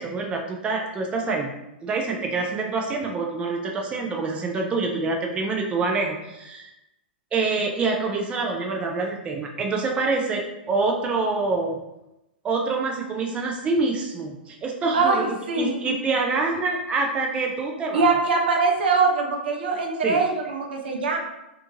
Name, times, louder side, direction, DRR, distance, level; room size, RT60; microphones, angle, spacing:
voice 1, 0.0-1.5 1.8-6.7 7.3-11.8 12.4-18.1 20.0-20.2, right 3 dB, 20° right, 1 dB, 0.4 m, -26 dB
voice 2, 14.9-16.0 17.9-21.2, right 4 dB, 70° right, 1 dB, 0.5 m, -22 dB
2.5 x 2.4 x 2.7 m, 0.90 s
hypercardioid pair, 110°, 6 cm